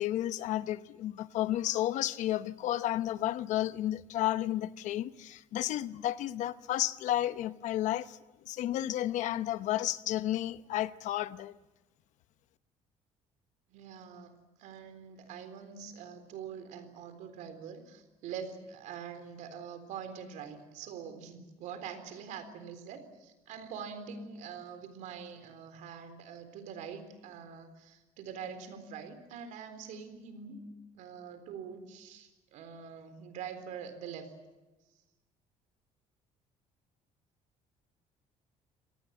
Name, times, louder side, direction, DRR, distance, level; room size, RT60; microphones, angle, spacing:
voice 1, 0.0-8.2 8.4-11.6, left 13 dB, 65° left, 0.9 m, -32 dB
voice 2, 13.7-30.6 30.9-34.3, right 7 dB, 70° right, 3.9 m, -44 dB
26.0 x 18.5 x 8.8 m
cardioid pair, 170°, 13 cm